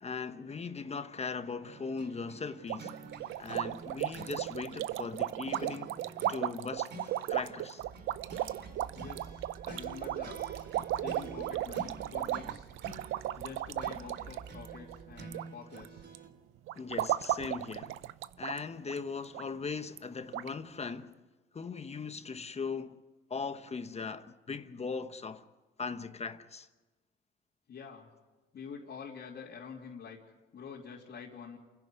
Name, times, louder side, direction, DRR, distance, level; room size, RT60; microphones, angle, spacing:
voice 1, 0.0-3.0 3.4-5.9 6.3-7.8 16.8-18.0 18.4-21.2 21.5-23.0 23.3-25.4 25.8-26.7, left 5 dB, 30° left, 1.1 m, -39 dB
sound 1, 1.6-16.3, right 3 dB, 60° right, 2.7 m, -50 dB
sound 2, 2.7-15.5 15.7-16.2 16.7-18.6 18.9-19.0 19.3-19.4 20.0-20.1 20.3-20.5, right 14 dB, 85° right, 0.6 m, -35 dB
sound 3, 7.8-15.4, right 7 dB, 40° right, 0.7 m, -52 dB
voice 2, 8.9-10.4 10.9-12.7 13.4-16.1 27.7-28.1 28.5-30.2 30.5-31.6, left 6 dB, 60° left, 3.3 m, -47 dB
28.5 x 11.0 x 9.6 m
cardioid pair, 90°, 20 cm